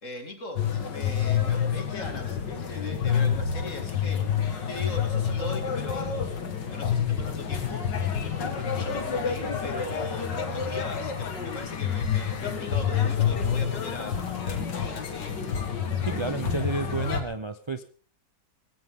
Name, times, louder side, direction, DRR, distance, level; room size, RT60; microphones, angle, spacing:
voice 1, 0.0-4.3 4.6-6.1 6.6-15.4, left 2 dB, 45° left, 5 dB, 2.7 m, -40 dB
sound 1, 0.6-17.2, left 7 dB, 90° left, 2.5 m, -28 dB
voice 2, 16.1-17.8, right 3 dB, 40° right, 8 dB, 0.4 m, -31 dB
19.0 x 16.5 x 3.7 m, 0.43 s
omnidirectional pair, 1.9 m